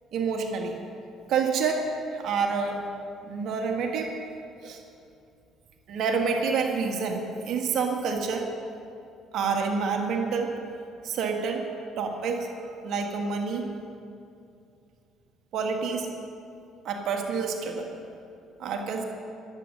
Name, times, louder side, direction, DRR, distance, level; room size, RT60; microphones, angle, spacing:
voice 1, 0.1-0.8 1.3-1.8 2.1-2.8 3.2-4.1 4.6-4.8 5.9-7.2 7.4-8.4 9.3-10.5 11.0-11.6 12.0-12.5 12.8-13.6 15.5-16.1 16.8-17.9 18.6-19.0, right 5 dB, 65° right, 3 dB, 1.7 m, -28 dB
23.0 x 8.6 x 5.5 m, 2.6 s
hypercardioid pair, 60°, 0 cm